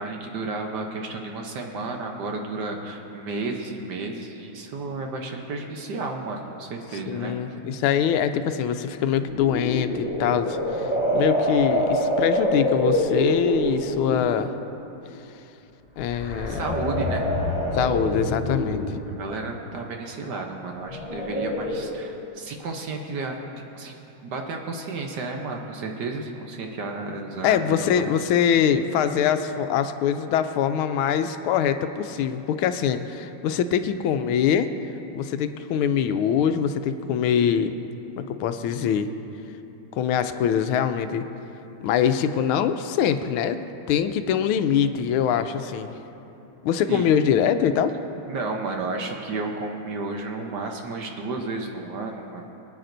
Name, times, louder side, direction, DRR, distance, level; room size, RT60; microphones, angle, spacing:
voice 1, 0.0-7.6 16.4-17.2 19.1-23.4 23.7-28.1 46.9-47.2 48.3-52.4, right 3 dB, 60° right, 2 dB, 1.3 m, -32 dB
voice 2, 7.1-14.5 16.0-16.6 17.7-18.8 27.4-34.7 35.1-37.8 38.2-39.1 40.0-41.3 41.8-43.6 43.9-45.9 46.6-47.9, left 8 dB, 85° left, 9 dB, 1.4 m, -23 dB
sound 1, 9.3-14.3 16.0-19.1 20.8-21.9, equal, 25° left, 1.8 m, -26 dB
23.5 x 9.2 x 2.6 m, 3.0 s
omnidirectional pair, 2.3 m